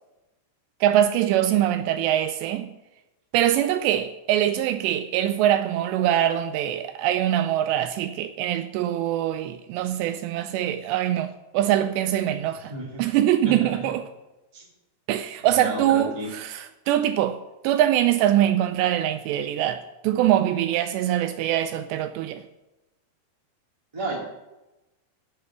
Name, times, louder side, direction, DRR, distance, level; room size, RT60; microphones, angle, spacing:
voice 1, 0.8-2.7 3.3-12.7 13.0-14.0 15.1-17.4 17.6-22.4, right 12 dB, 85° right, 2.6 m, -23 dB
voice 2, 12.6-13.0 13.4-13.7 14.5-14.7 15.4-16.3 23.9-24.2, right 2 dB, 10° right, 1.8 m, -32 dB
9.3 x 6.6 x 8.1 m
omnidirectional pair, 5.2 m